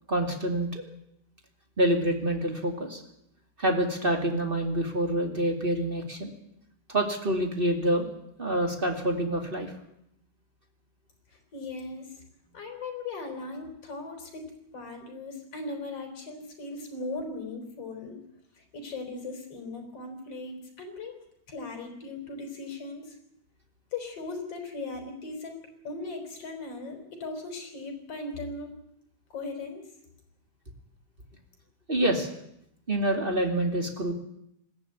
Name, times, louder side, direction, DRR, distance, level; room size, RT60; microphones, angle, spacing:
voice 1, 0.1-0.8 1.8-3.0 3.6-6.3 6.9-8.1 8.4-9.7 31.9-32.3 32.9-34.1, right 1 dB, 20° right, 3 dB, 1.8 m, -27 dB
voice 2, 11.3-12.2 12.5-18.2 18.5-21.2 21.5-23.2 23.9-28.7 29.3-29.8, left 3 dB, 40° left, 4 dB, 5.0 m, -38 dB
20.5 x 15.0 x 9.4 m, 0.77 s
omnidirectional pair, 4.4 m